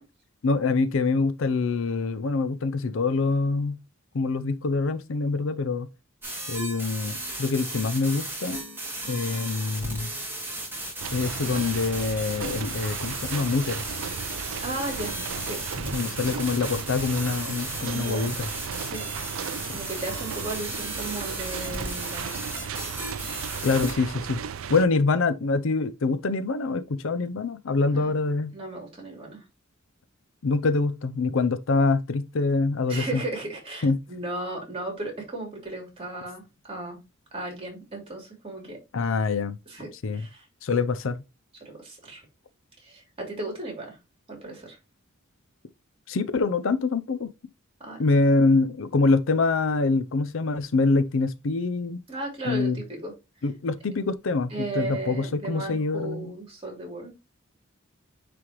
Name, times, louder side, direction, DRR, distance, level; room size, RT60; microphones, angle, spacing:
voice 1, 0.4-3.8 4.1-5.9 6.5-8.6 9.1-10.1 11.1-13.8 15.9-18.5 23.6-24.4 24.7-28.5 30.4-33.2 33.8-34.0 38.9-39.6 40.0-40.2 40.6-41.2 46.1-47.3 48.0-52.0 52.4-52.8 53.4-56.3, left 3 dB, 70° left, 0.5 m, -25 dB
sound 1, 6.2-23.9, right 1 dB, 10° right, 2.4 m, -35 dB
sound 2, 11.0-24.8, right 7 dB, 80° right, 0.4 m, -36 dB
voice 2, 14.6-15.1 15.4-15.6 17.9-18.3 18.8-19.1 19.7-22.3 27.9-28.1 28.5-29.4 32.9-37.0 37.3-38.8 39.7-40.4 41.6-42.2 42.8-44.0 44.3-44.8 47.8-48.0 52.1-53.1 54.5-57.1, right 2 dB, 30° right, 3.0 m, -35 dB
9.5 x 3.4 x 3.0 m
head